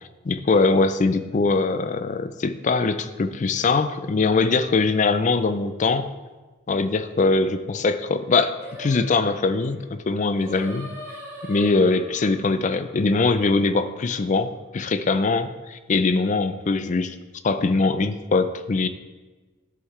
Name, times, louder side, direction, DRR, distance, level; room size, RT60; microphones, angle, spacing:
voice 1, 0.2-6.1 6.7-10.9 11.4-17.2 17.4-18.9, left 3 dB, 35° left, 11 dB, 0.4 m, -22 dB
Singing, 8.6-13.9, equal, 10° right, 1.3 m, -42 dB
11.0 x 5.8 x 3.2 m, 1.2 s
head